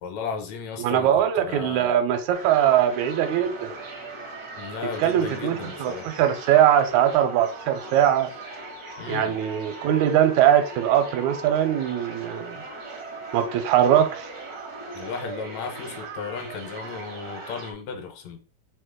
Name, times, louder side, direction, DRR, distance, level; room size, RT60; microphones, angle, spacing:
voice 1, 0.0-2.0 4.5-6.1 9.0-9.3 14.9-18.4, left 5 dB, 75° left, 1.9 m, -35 dB
voice 2, 0.8-3.7 5.0-8.3 9.1-12.6 13.3-14.3, right 10 dB, 85° right, 1.9 m, -21 dB
sound 1, 2.3-17.7, right 3 dB, 70° right, 0.9 m, -39 dB
4.4 x 2.8 x 3.7 m
omnidirectional pair, 3.3 m